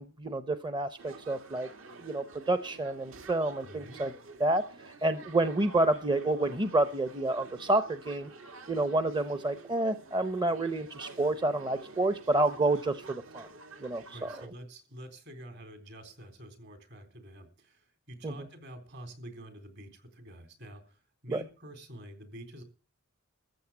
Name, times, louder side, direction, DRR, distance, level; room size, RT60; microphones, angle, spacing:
voice 1, 0.0-1.7 2.0-4.1 4.4-8.3 8.7-13.5 13.8-14.3 18.2-18.3 21.3-21.4, right 2 dB, 20° right, 10 dB, 0.7 m, -29 dB
sound 1, 1.0-14.5, right 3 dB, 70° right, 2.2 m, -50 dB
voice 2, 3.6-4.0 14.1-22.6, right 1 dB, 55° right, 8 dB, 4.0 m, -48 dB
14.0 x 7.5 x 8.5 m, 0.35 s
head